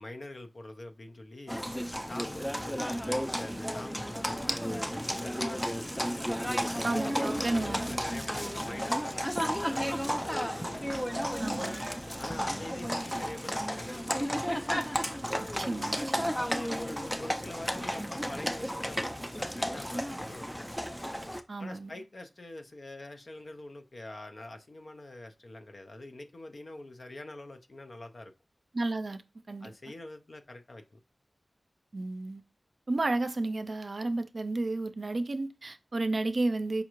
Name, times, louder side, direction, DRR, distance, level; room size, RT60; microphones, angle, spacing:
voice 1, 0.0-1.6 2.1-6.2 6.8-10.8 12.2-14.8 16.3-20.6 21.6-28.3 29.6-31.0, left 2 dB, 60° left, 0.5 m, -45 dB
Livestock farm animals working animals, 1.5-21.4, equal, 5° left, 0.4 m, -33 dB
voice 2, 6.8-7.9 11.4-11.9 15.4-16.4 21.5-21.9 28.7-29.2 29.5-29.7 31.9-32.4 32.9-36.8, right 2 dB, 60° right, 0.4 m, -32 dB
sound 1, 12.4-12.9 15.5-16.0 17.7-18.2, left 1 dB, 25° left, 0.8 m, -51 dB
5.0 x 2.4 x 3.0 m
wide cardioid pair, 60°, 0 cm